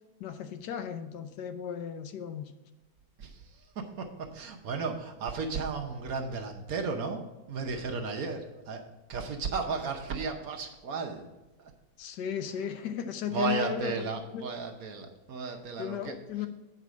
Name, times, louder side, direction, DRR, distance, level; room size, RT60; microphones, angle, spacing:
voice 1, 0.2-2.5 12.0-14.1 14.3-14.5 15.8-16.5, left 9 dB, 75° left, 9 dB, 1.2 m, -35 dB
voice 2, 3.2-7.2 7.5-8.8 9.1-11.3 11.6-11.7 13.3-16.1, right 4 dB, 60° right, 3 dB, 1.2 m, -34 dB
8.0 x 4.9 x 6.1 m, 1.1 s
omnidirectional pair, 1.9 m